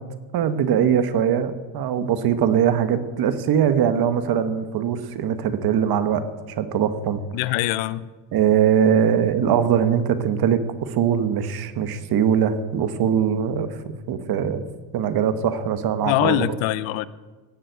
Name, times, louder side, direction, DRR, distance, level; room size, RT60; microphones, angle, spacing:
voice 1, 0.3-6.2 6.6-7.2 8.3-14.6 14.9-16.6, right 8 dB, 45° right, 10 dB, 1.3 m, -21 dB
voice 2, 7.3-8.1 16.1-17.1, left 14 dB, 65° left, 17 dB, 0.8 m, -23 dB
17.5 x 7.5 x 8.0 m, 1.3 s
cardioid pair, 130°, 50 cm